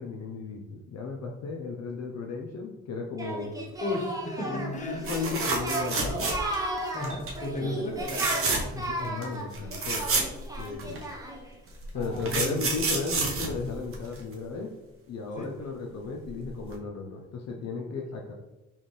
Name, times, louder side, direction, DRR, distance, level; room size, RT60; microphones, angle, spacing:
voice 1, 0.0-3.5 4.4-6.3 7.6-8.0 8.7-10.0 10.6-11.0 11.9-14.7 15.1-18.3, left 4 dB, 60° left, 0 dB, 0.7 m, -35 dB
Singing, 3.2-11.5, right 1 dB, 10° right, 0.9 m, -35 dB
voice 2, 3.8-5.1 6.9-8.8 11.9-12.6 15.4-15.5, left 1 dB, 25° left, 0 dB, 1.1 m, -34 dB
sound 1, 5.0-6.7 7.0-7.4 8.0-8.8 9.2-9.3 9.5-11.0 11.8-14.3 16.2-16.4 16.7-16.8, right 3 dB, 45° right, 1.0 m, -29 dB
4.2 x 3.6 x 3.2 m, 1.0 s
cardioid pair, 90°, 30 cm